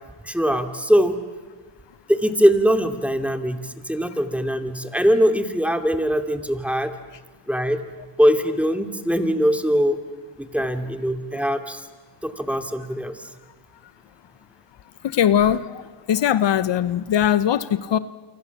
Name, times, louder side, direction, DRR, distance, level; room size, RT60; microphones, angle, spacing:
voice 1, 0.2-1.2 2.1-6.9 7.5-7.8 8.2-10.0 10.4-11.8 12.2-13.2, equal, 5° right, 7 dB, 2.6 m, -21 dB
voice 2, 15.0-18.0, left 10 dB, 65° left, 15 dB, 1.0 m, -21 dB
28.0 x 24.5 x 7.3 m, 1.4 s
cardioid pair, 65°, 47 cm